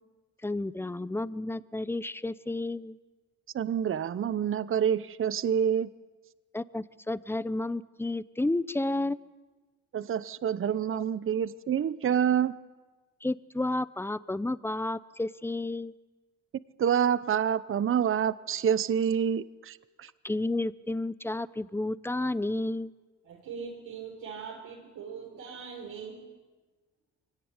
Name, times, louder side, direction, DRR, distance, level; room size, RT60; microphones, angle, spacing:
voice 1, 0.4-3.0 6.5-9.2 10.9-11.0 13.2-15.9 20.2-22.9, left 2 dB, 10° left, 17 dB, 0.7 m, -31 dB
voice 2, 3.5-5.9 9.9-12.5 16.8-20.1, right 8 dB, 45° right, 17 dB, 0.8 m, -27 dB
voice 3, 23.2-26.3, right 6 dB, 85° right, -2 dB, 4.1 m, -41 dB
23.0 x 17.5 x 9.7 m, 1.3 s
cardioid pair, 90°, 30 cm